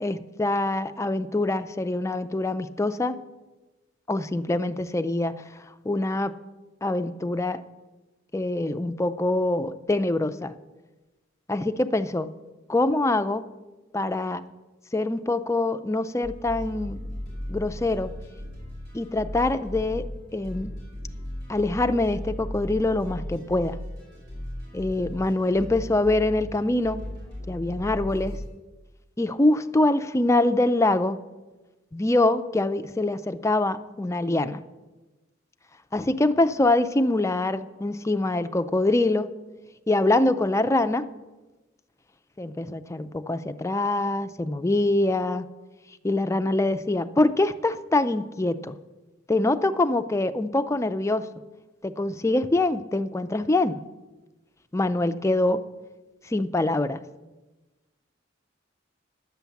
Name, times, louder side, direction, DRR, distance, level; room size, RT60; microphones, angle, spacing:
voice 1, 0.0-3.2 4.1-5.3 5.8-6.3 6.8-7.6 8.3-10.5 11.5-12.4 12.7-13.5 13.9-14.4 14.9-17.0 17.5-18.1 18.9-20.7 21.5-23.8 24.7-27.0 27.5-28.4 29.2-31.2 31.9-34.6 35.9-39.3 39.9-41.1 42.4-45.5 46.0-48.8 49.3-51.3 51.8-53.8 54.7-55.6 56.3-57.0, left 2 dB, 15° left, 11 dB, 0.4 m, -24 dB
sound 1, 16.2-28.5, left 1 dB, 60° right, 4.8 m, -37 dB
10.5 x 8.1 x 7.1 m, 1.1 s
head